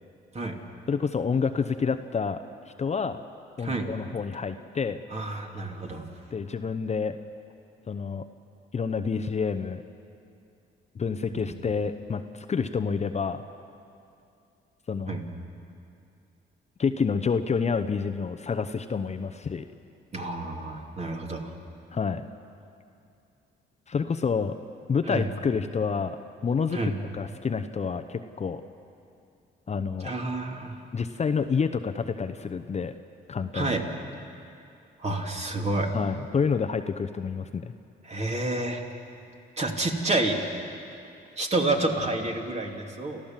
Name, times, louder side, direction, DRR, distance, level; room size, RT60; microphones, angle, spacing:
voice 1, 0.9-2.4 2.8-3.2 3.6-5.0 6.3-7.2 7.9-8.2 8.7-9.8 10.9-13.4 14.9-15.2 16.8-19.7 21.9-22.3 23.9-24.6 24.9-28.6 29.7-30.1 30.9-32.9 33.3-33.7 35.9-37.7, left 5 dB, 35° left, 8 dB, 0.8 m, -28 dB
voice 2, 5.1-6.1 11.3-11.5 15.1-15.2 20.1-21.5 25.1-25.3 26.7-26.9 30.0-30.8 33.5-33.8 35.0-35.9 38.0-38.8 39.6-40.4 41.4-43.2, right 2 dB, 35° right, 1 dB, 2.8 m, -29 dB
29.5 x 14.0 x 7.4 m, 2.6 s
cardioid pair, 90°, 20 cm